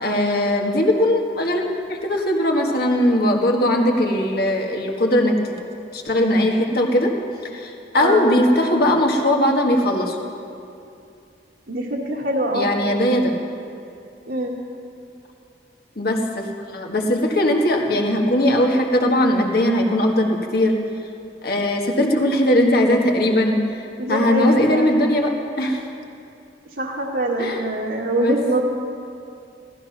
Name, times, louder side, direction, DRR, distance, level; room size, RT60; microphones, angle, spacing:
voice 1, 0.0-5.5 5.9-7.1 7.5-10.2 12.5-13.3 16.0-20.8 21.4-25.3 25.6-25.8 27.4-27.6 28.2-28.4, left 1 dB, 60° left, 1 dB, 1.8 m, -19 dB
voice 2, 11.7-12.7 14.3-14.5 24.0-24.9 26.8-28.6, right 1 dB, 65° right, -4 dB, 1.6 m, -23 dB
16.0 x 14.0 x 6.0 m, 2.6 s
head